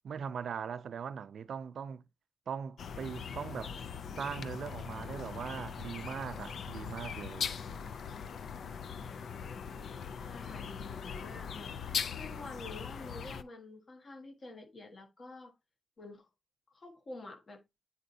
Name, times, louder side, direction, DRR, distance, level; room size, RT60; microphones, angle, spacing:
voice 1, 0.0-2.0 2.5-3.8 4.2-7.5, right 7 dB, 65° right, 0.4 m, -40 dB
sound 1, 2.8-13.4, left 6 dB, 65° left, 0.4 m, -40 dB
voice 2, 10.2-15.5 16.0-16.3 16.7-17.6, left 2 dB, 40° left, 1.3 m, -48 dB
9.3 x 4.1 x 2.6 m
wide cardioid pair, 150°, 0 cm